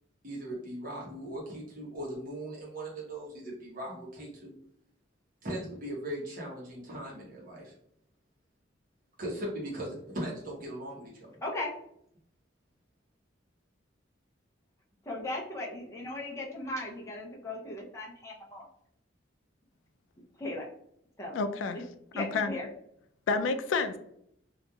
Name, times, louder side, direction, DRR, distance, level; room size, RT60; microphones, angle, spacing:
voice 1, 0.2-4.5 5.4-7.7 9.2-11.3, right 1 dB, 50° right, -4 dB, 0.9 m, -39 dB
voice 2, 11.4-11.7 15.0-18.7 20.4-20.7 21.2-21.4 21.7-21.8 22.1-22.7, left 1 dB, 15° left, -3 dB, 0.5 m, -37 dB
voice 3, 21.3-21.8 22.2-22.5 23.3-24.0, left 4 dB, 85° left, 9 dB, 0.3 m, -29 dB
2.8 x 2.4 x 2.2 m, 0.71 s
head